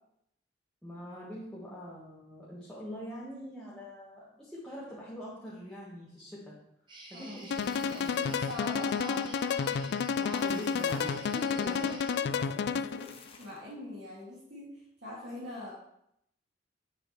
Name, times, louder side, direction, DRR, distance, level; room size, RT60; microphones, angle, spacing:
voice 1, 0.8-6.6 7.1-8.3 10.2-11.8, equal, 5° left, -9 dB, 1.4 m, -44 dB
sound 1, 6.9-12.2, right 2 dB, 25° right, 1.1 m, -50 dB
voice 2, 7.1-7.5 8.2-9.8 10.9-15.7, left 1 dB, 65° right, -9 dB, 2.2 m, -42 dB
sound 2, 7.2-8.7 10.1-11.2 12.7-13.7, left 4 dB, 30° left, 0.8 m, -55 dB
sound 3, 7.5-13.1, left 6 dB, 65° left, 0.3 m, -31 dB
7.9 x 6.5 x 3.1 m, 0.76 s
head